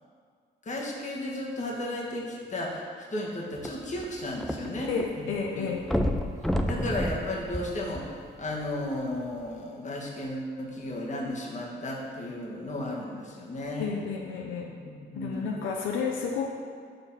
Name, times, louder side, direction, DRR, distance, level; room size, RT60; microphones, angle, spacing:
voice 1, 0.6-2.8 3.1-4.9 5.1-5.2 5.6-5.7 6.6-14.0 15.1-15.5, left 1 dB, 35° left, -2 dB, 1.4 m, -34 dB
sound 1, 3.6-5.1 5.3-5.4 5.8-8.4 9.1-9.2, equal, ahead, 0.4 m, -30 dB
voice 2, 4.9-5.9 13.8-14.7 15.1-16.5, left 5 dB, 85° left, 1 dB, 0.6 m, -31 dB
6.6 x 3.9 x 5.5 m, 2.1 s
cardioid pair, 90°, 20 cm